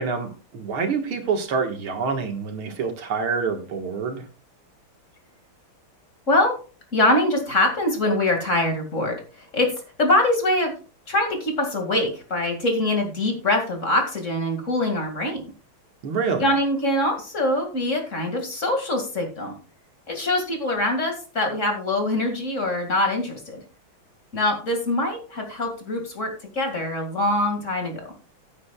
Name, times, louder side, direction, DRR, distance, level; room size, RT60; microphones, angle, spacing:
voice 1, 0.0-4.2 16.0-16.5, right 5 dB, 75° right, 4 dB, 2.4 m, -26 dB
voice 2, 6.9-9.7 10.0-10.8 11.1-15.4 16.4-19.6 20.1-23.6 24.3-28.0, left 1 dB, 35° left, 3 dB, 2.4 m, -23 dB
15.5 x 8.6 x 2.3 m, 0.35 s
omnidirectional pair, 2.3 m